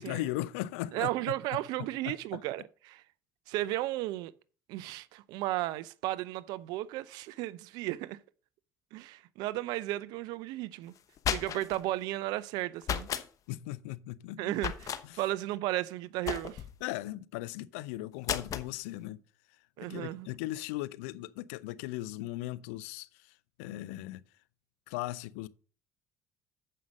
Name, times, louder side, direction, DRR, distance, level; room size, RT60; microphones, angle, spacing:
voice 1, 0.0-1.3 2.1-2.4 13.5-14.5 15.0-15.2 16.8-19.2 19.8-24.2 24.9-25.5, left 16 dB, 85° left, 0.4 m, -38 dB
voice 2, 0.9-3.0 3.5-4.3 4.7-8.2 8.9-10.9 11.3-13.1 14.4-16.6 19.8-20.3, right 16 dB, 75° right, 0.6 m, -34 dB
sound 1, 11.0-11.8 12.8-13.3 14.6-15.0 16.3-16.8 18.2-18.7, left 9 dB, 55° left, 0.9 m, -34 dB
7.5 x 5.5 x 6.2 m
supercardioid pair, 75°, 7 cm